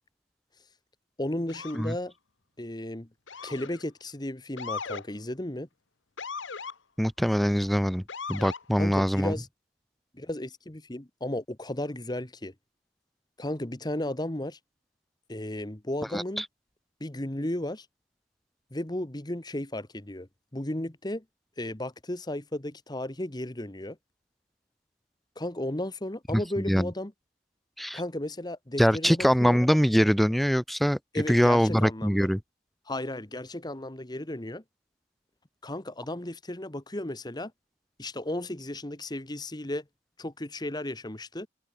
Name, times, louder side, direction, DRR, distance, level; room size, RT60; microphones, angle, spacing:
voice 1, 1.2-2.1 2.6-3.1 3.4-5.7 8.8-9.5 10.1-12.5 13.4-14.6 15.3-16.4 17.0-17.9 18.7-20.3 20.5-21.2 21.6-24.0 25.4-27.1 27.9-29.6 31.1-32.3 32.9-34.6 35.6-37.5 38.0-39.8 40.2-41.5, left 1 dB, 20° left, 1.3 m, -34 dB
Motor vehicle (road) / Siren, 1.5-1.9 3.3-3.8 4.6-5.1 6.2-6.8 8.1-8.6, left 5 dB, 75° left, 1.3 m, -37 dB
voice 2, 7.0-8.0 8.3-9.3 16.1-16.4 26.3-26.4 26.7-26.9 27.8-28.0 28.8-32.4, equal, ahead, 0.6 m, -23 dB
head